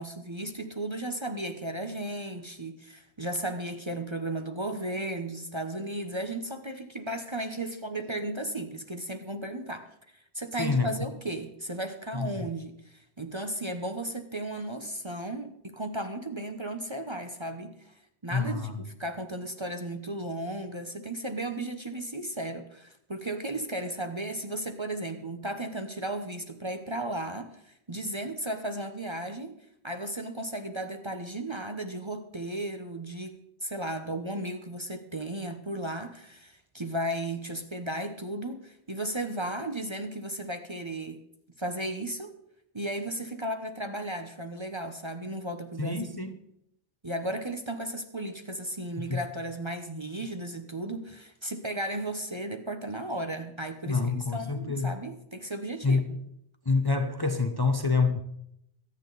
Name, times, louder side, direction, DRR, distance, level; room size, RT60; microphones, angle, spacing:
voice 1, 0.0-9.9 10.1-17.9 18.2-29.6 29.8-33.4 33.6-41.2 41.6-42.3 42.7-46.1 47.0-56.0, right 1 dB, 25° right, 1.0 m, -35 dB
voice 2, 10.6-10.9 12.1-12.5 18.3-18.8 45.8-46.4 49.0-49.2 53.9-54.9 55.8-56.2 56.6-58.2, left 4 dB, 25° left, 0.9 m, -27 dB
23.0 x 8.8 x 4.1 m
omnidirectional pair, 1.1 m